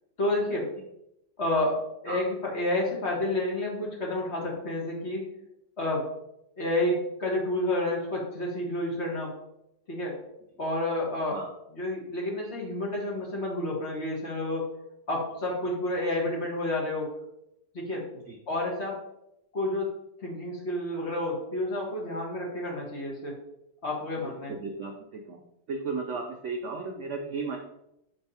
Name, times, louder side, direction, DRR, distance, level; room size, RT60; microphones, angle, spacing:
voice 1, 0.2-0.7 1.4-5.2 5.8-6.1 6.6-9.3 9.9-10.1 10.6-11.4 11.7-14.7 15.1-17.1 17.7-18.0 18.5-19.0 19.5-19.9 20.2-23.3 23.8-24.5, left 1 dB, 40° left, -2 dB, 1.5 m, -30 dB
voice 2, 24.2-25.4 25.7-27.6, right 4 dB, 75° right, 2 dB, 0.6 m, -35 dB
5.4 x 3.4 x 5.5 m, 0.82 s
omnidirectional pair, 2.0 m